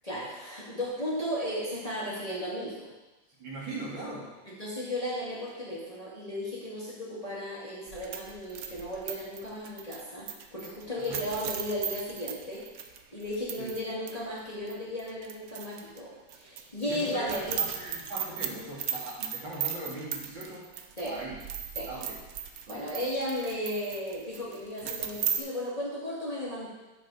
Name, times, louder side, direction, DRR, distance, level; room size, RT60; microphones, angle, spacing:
voice 1, 0.0-2.9 4.4-17.6 21.0-21.2 21.8-21.9 22.7-26.7, left 1 dB, 15° left, -8 dB, 2.3 m, -35 dB
voice 2, 3.4-4.3 11.0-11.2 13.6-13.7 16.8-20.7 21.1-21.4 21.9-22.2 22.7-22.9, right 1 dB, 60° right, -5 dB, 2.9 m, -39 dB
sound 1, 7.9-13.8 14.1-14.2 14.7-16.0 16.3-25.4, right 8 dB, 90° right, 0.7 m, -37 dB
9.6 x 7.8 x 4.2 m, 1.1 s
omnidirectional pair, 2.4 m